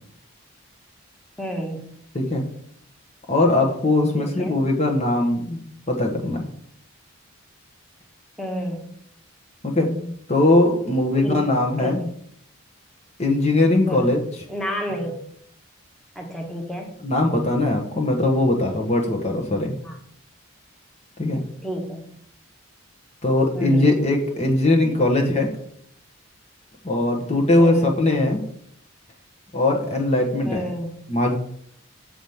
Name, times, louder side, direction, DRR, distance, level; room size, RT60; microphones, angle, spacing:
voice 1, 1.4-1.9 4.2-4.6 8.4-8.9 11.2-11.4 11.8-11.9 13.9-14.1 14.5-15.1 16.1-17.0 19.8-20.0 21.6-22.1 23.5-24.0 27.6-27.9 30.5-31.0, equal, ahead, 1 dB, 1.4 m, -30 dB
voice 2, 3.3-5.6 5.9-6.4 9.6-12.1 13.2-14.2 17.0-19.7 21.2-21.4 23.2-25.5 26.8-28.4 29.5-30.6 31.1-31.4, left 2 dB, 30° left, 1 dB, 1.2 m, -20 dB
7.8 x 5.1 x 7.1 m, 0.67 s
head